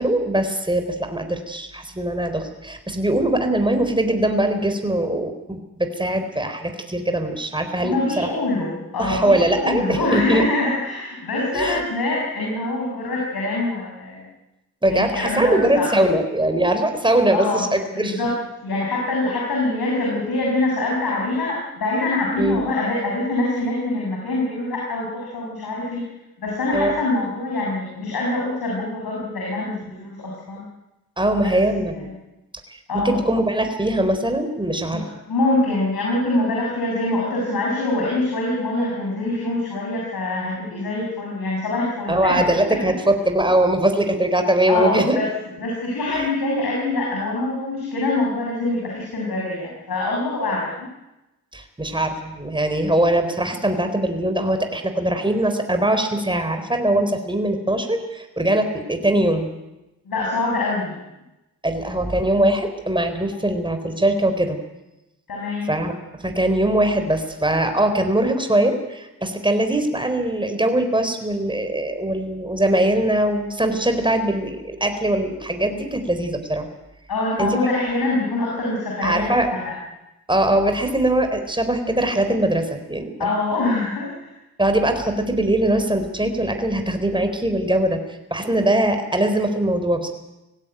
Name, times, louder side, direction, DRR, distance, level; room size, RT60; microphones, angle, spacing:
voice 1, 0.0-8.3 9.0-10.4 11.5-11.8 14.8-18.2 22.4-22.7 26.7-27.0 31.2-32.1 33.0-35.1 42.1-45.2 46.1-46.3 51.5-59.5 61.6-64.6 65.7-65.9 66.2-76.7 77.4-77.5 79.0-79.5 80.3-83.3 84.6-90.1, right 1 dB, 15° right, 6 dB, 4.3 m, -21 dB
voice 2, 7.8-14.3 14.9-15.9 17.3-18.4 18.6-26.0 26.4-30.6 31.4-31.5 31.9-32.1 32.9-33.2 34.9-42.8 44.7-45.3 45.6-50.9 60.1-61.0 65.3-65.7 77.1-79.8 83.2-84.3, left 2 dB, 75° left, -3 dB, 7.1 m, -24 dB
20.0 x 16.0 x 9.3 m, 0.96 s
supercardioid pair, 45°, 37 cm